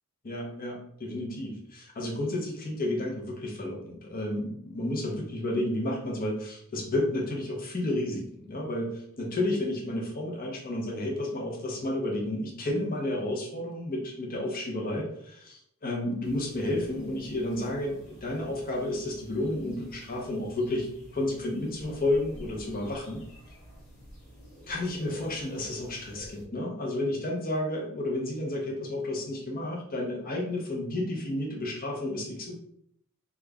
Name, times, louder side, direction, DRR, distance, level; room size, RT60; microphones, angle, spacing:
voice 1, 0.2-23.2 24.7-32.5, left 1 dB, 40° left, -1 dB, 0.8 m, -31 dB
sound 1, 16.2-26.5, equal, 60° left, 1.3 m, -49 dB
3.1 x 2.4 x 3.4 m, 0.68 s
head